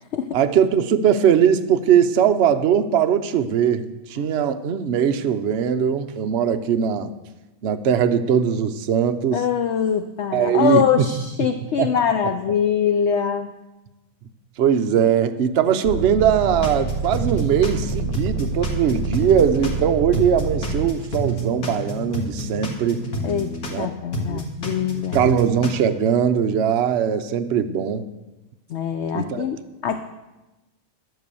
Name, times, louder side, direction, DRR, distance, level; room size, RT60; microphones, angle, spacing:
voice 1, 0.3-7.1 7.6-9.4 10.3-11.1 11.8-11.9 14.6-23.0 23.7-23.9 24.3-24.4 25.1-28.1 29.1-29.5, right 8 dB, 60° right, 8 dB, 0.8 m, -20 dB
voice 2, 9.3-13.5 23.2-25.3 28.7-30.0, left 7 dB, 60° left, 8 dB, 0.8 m, -23 dB
sound 1, 15.8-20.9 21.6-22.3, right 4 dB, 75° right, 1.2 m, -28 dB
sound 2, 16.6-19.8 20.1-23.8 24.1-25.7, right 1 dB, 80° left, 2.3 m, -29 dB
11.5 x 8.0 x 6.9 m, 1.1 s
omnidirectional pair, 1.6 m